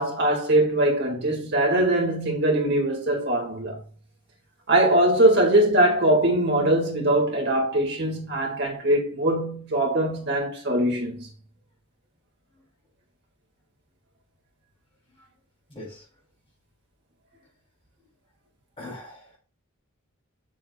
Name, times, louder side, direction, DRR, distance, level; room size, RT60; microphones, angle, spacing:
voice 1, 0.0-3.8 4.7-11.3, right 1 dB, 50° right, 2.1 m, -22 dB
voice 2, 15.7-16.0 18.8-19.4, left 1 dB, 25° left, 3.4 m, -40 dB
7.4 x 6.4 x 2.4 m
head